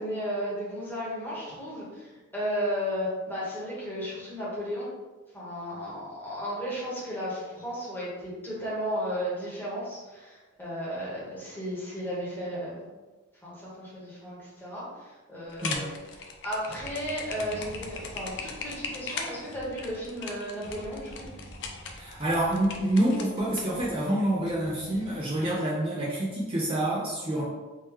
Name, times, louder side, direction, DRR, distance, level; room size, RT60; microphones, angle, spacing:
voice 1, 0.0-4.9 5.3-12.9 13.4-15.9 16.4-21.3 27.3-27.4, equal, 10° left, -8 dB, 1.3 m, -34 dB
sound 1, 15.5-23.6, left 5 dB, 60° left, 0.5 m, -38 dB
sound 2, 16.8-25.5, equal, 75° left, 0.9 m, -47 dB
voice 2, 21.9-27.4, right 1 dB, 25° right, -7 dB, 0.6 m, -27 dB
3.6 x 2.9 x 3.1 m, 1.2 s
head